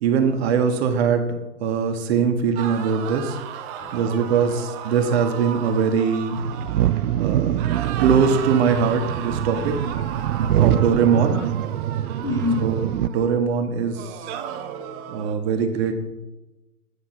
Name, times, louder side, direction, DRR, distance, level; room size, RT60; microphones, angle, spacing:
voice 1, 0.0-1.3 1.6-3.4 3.9-6.4 7.2-7.7 8.0-9.9 10.4-11.4 12.6-14.2 15.1-15.9, right 6 dB, 45° right, 6 dB, 1.2 m, -22 dB
voice 2, 2.6-3.1 3.7-4.5 5.1-5.5 6.3-6.4 6.7-8.0 8.5-8.6 9.6-9.9 10.3-10.8 11.3-11.4 12.2-12.8, left 3 dB, 5° left, 1 dB, 1.2 m, -33 dB
sound 1, 2.6-7.2 7.5-13.4 13.9-15.4, right 9 dB, 25° right, 0.7 m, -35 dB
sound 2, 6.4-13.1, right 12 dB, 75° right, 0.5 m, -24 dB
9.8 x 5.9 x 6.0 m, 1.0 s
hypercardioid pair, 130°, 45 cm